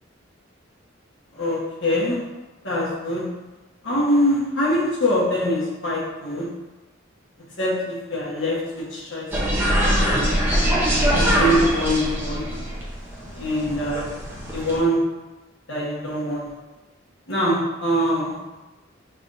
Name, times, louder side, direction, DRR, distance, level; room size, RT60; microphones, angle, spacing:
voice 1, 1.3-2.2 2.6-3.2 3.8-6.5 7.6-9.3 9.8-10.4 11.2-12.4 13.3-14.1 14.5-15.0 15.7-16.5 17.3-18.3, equal, 70° left, -6 dB, 1.2 m, -23 dB
sound 1, 9.3-14.8, equal, 10° right, 0.7 m, -22 dB
5.0 x 3.4 x 2.6 m, 1.1 s
head